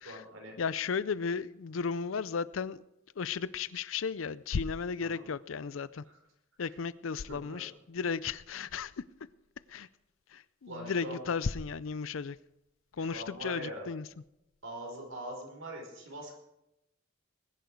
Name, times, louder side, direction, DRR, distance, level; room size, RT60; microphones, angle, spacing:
voice 1, 0.0-0.5 5.0-5.2 6.0-6.2 6.7-6.8 7.3-7.6 10.7-11.3 13.0-13.9 14.6-16.3, right 1 dB, 85° right, 1 dB, 4.8 m, -43 dB
voice 2, 0.6-2.8 3.2-6.0 6.6-8.9 9.7-9.9 10.3-12.4 13.0-14.0, left 5 dB, 85° left, 18 dB, 0.5 m, -34 dB
20.5 x 10.5 x 4.7 m, 0.85 s
head